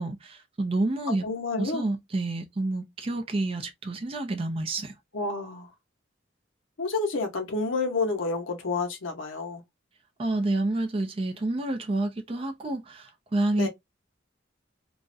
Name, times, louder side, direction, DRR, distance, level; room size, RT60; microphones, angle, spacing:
voice 1, 0.0-1.2 1.6-4.9 10.2-13.7, right 2 dB, 30° right, 0.4 m, -29 dB
voice 2, 1.2-1.9 5.1-5.7 6.8-9.6 13.5-13.7, left 3 dB, 85° left, 0.7 m, -29 dB
2.3 x 2.1 x 2.5 m
head